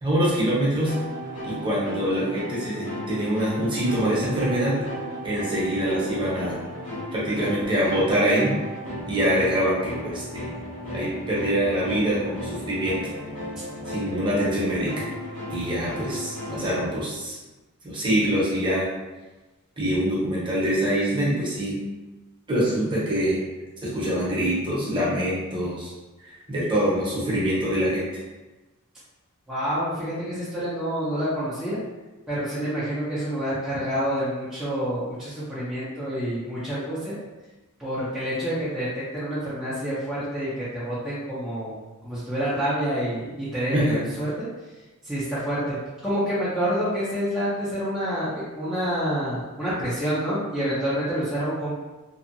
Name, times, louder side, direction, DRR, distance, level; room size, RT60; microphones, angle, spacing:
voice 1, 0.0-0.9 1.4-4.8 5.2-6.6 7.1-8.5 9.1-10.5 10.9-12.9 13.9-15.0 15.5-17.4 17.8-18.9 19.8-21.8 22.5-23.4 23.8-25.9 26.2-28.1 43.7-44.0, equal, 20° right, -7 dB, 0.9 m, -24 dB
sound 1, 0.8-16.8, equal, 70° left, 1.2 m, -35 dB
voice 2, 29.5-31.8 32.3-37.2 37.8-38.9 39.1-41.7 42.0-44.5 45.0-45.8 46.0-51.7, equal, 5° right, -12 dB, 0.5 m, -28 dB
2.7 x 2.3 x 2.5 m, 1.1 s
head